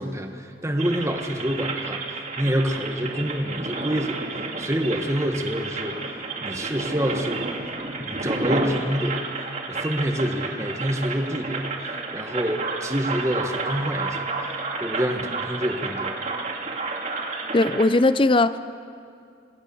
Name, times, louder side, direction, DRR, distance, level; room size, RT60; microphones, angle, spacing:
voice 1, 0.0-4.2 4.6-6.0 6.4-7.5 8.0-9.3 9.7-14.5 14.8-16.1, equal, 15° right, 4 dB, 1.5 m, -27 dB
sound 1, 0.8-17.9, right 3 dB, 40° right, 2.3 m, -31 dB
voice 2, 17.5-18.6, left 2 dB, 25° left, 13 dB, 0.6 m, -18 dB
26.5 x 18.0 x 7.1 m, 2.4 s
head